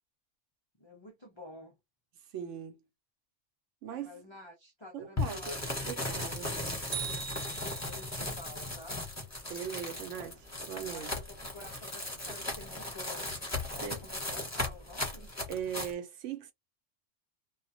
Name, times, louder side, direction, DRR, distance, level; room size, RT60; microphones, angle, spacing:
voice 1, 0.8-1.8 4.0-6.2 7.7-9.0 10.9-11.2 11.5-13.3 13.7-15.3, left 2 dB, 45° left, 0.3 m, -50 dB
voice 2, 2.3-2.8 3.8-4.2 4.9-5.6 5.9-6.6 9.5-11.1 13.8-14.1 15.5-16.5, right 8 dB, 75° right, 0.9 m, -39 dB
sound 1, 5.2-15.9, left 2 dB, 15° left, 0.7 m, -37 dB
sound 2, 6.9-8.3, right 9 dB, 60° right, 0.5 m, -40 dB
2.3 x 2.2 x 2.6 m
omnidirectional pair, 1.3 m